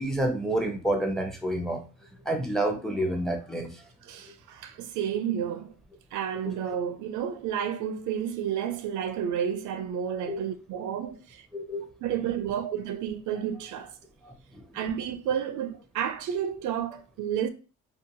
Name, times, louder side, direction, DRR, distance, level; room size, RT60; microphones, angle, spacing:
voice 1, 0.0-1.8 2.2-3.8 6.4-6.5 10.3-10.4 11.5-11.9 14.2-14.7, right 1 dB, ahead, 0.6 m, -29 dB
voice 2, 4.1-5.7 6.1-11.5 12.0-13.9 14.7-17.5, right 9 dB, 75° right, 0.4 m, -31 dB
2.7 x 2.2 x 2.6 m
cardioid pair, 90°, 30 cm